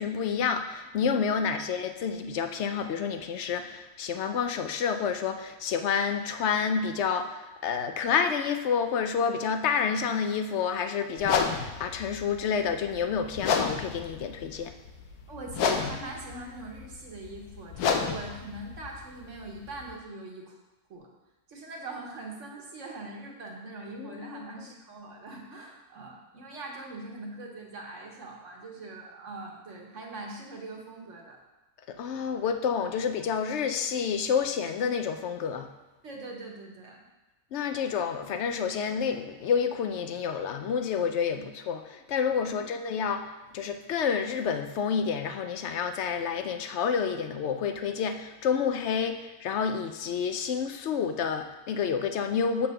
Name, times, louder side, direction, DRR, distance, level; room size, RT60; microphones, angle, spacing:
voice 1, 0.0-14.7 24.0-24.4 31.9-35.7 37.5-52.7, left 6 dB, 65° left, 7 dB, 0.7 m, -29 dB
sound 1, 11.2-19.9, left 6 dB, 90° left, 1.2 m, -32 dB
voice 2, 15.3-20.6 20.9-21.1 21.5-31.4 36.0-37.0 41.3-41.4 42.4-42.6, right 2 dB, 55° right, 0 dB, 1.6 m, -42 dB
7.4 x 4.3 x 6.5 m, 1.1 s
omnidirectional pair, 1.6 m